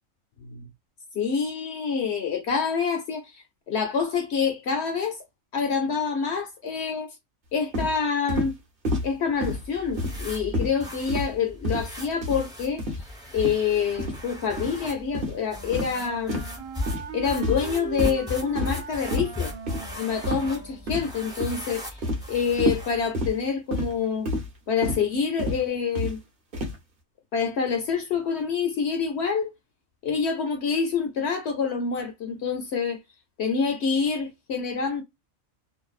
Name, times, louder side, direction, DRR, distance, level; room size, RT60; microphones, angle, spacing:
voice 1, 1.1-5.2 5.5-7.1 7.5-8.5 9.0-12.8 13.3-16.4 17.1-19.5 20.0-21.8 22.3-24.3 24.7-26.2 27.3-29.5 30.0-33.0 33.4-35.0, left 6 dB, 65° left, 0.8 m, -27 dB
sound 1, 7.7-7.9 8.3-8.5 8.8-9.1 9.4-9.6 10.0-10.3 10.5-10.7 11.1-11.3 11.6-11.9 12.2-12.4 12.8-13.0 13.4-13.6 14.0-14.2 14.6-14.7 15.1-15.4 15.7-15.9 16.3-16.5 16.9-17.1 17.4-17.7 18.0-18.2 18.6-18.8 19.1-19.3 19.7-19.8 20.2-20.5 20.9-21.2 21.4-21.6 22.0-22.2 22.6-22.8 23.1-23.3 23.7-23.9 24.3-24.5 24.8-25.0 25.4-25.6 25.9-26.1 26.5-26.8, left 1 dB, 45° right, 1.0 m, -28 dB
sound 2, 9.3-23.1, left 2 dB, 5° right, 0.7 m, -38 dB
Wind instrument woodwind instrument, 15.4-21.0, right 7 dB, 85° right, 1.1 m, -40 dB
2.6 x 2.2 x 2.3 m
omnidirectional pair, 1.4 m